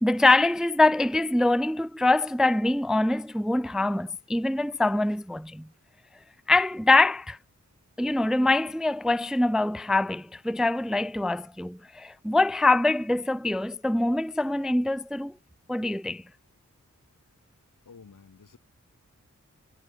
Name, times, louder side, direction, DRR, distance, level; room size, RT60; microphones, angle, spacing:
voice 1, 0.0-5.7 6.5-7.4 8.0-15.3 15.7-16.2, left 2 dB, ahead, 0.4 m, -24 dB
voice 2, 17.8-18.6, left 5 dB, 75° left, 2.9 m, -50 dB
wide cardioid pair, 55°, 31 cm